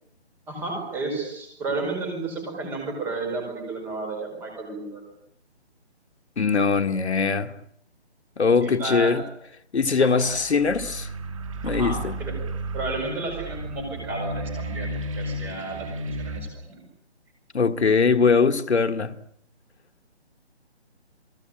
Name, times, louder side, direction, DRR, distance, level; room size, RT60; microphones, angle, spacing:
voice 1, 0.5-5.0 8.6-9.2 10.0-10.4 11.6-12.3 12.7-16.8, right 3 dB, 5° right, 4.8 m, -32 dB
voice 2, 6.4-7.5 8.4-9.2 9.7-11.1 11.6-12.1 17.5-19.1, left 5 dB, 75° left, 1.7 m, -21 dB
sound 1, 10.3-16.4, right 1 dB, 30° right, 2.9 m, -33 dB
29.5 x 19.0 x 8.9 m
hypercardioid pair, 175°, 33 cm